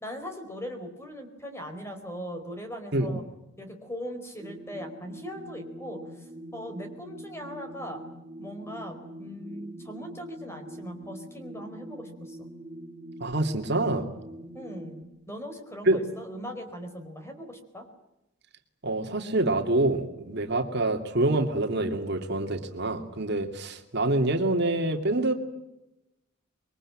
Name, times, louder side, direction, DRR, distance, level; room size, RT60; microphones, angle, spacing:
voice 1, 0.0-3.2 3.6-8.1 8.4-12.5 14.5-17.9, equal, 15° left, 6 dB, 4.6 m, -40 dB
sound 1, 4.4-15.0, right 1 dB, 25° right, 2.5 m, -44 dB
voice 2, 13.2-14.0 15.9-16.0 18.8-25.3, right 2 dB, 55° right, 5 dB, 2.6 m, -26 dB
27.0 x 23.0 x 8.8 m, 0.91 s
head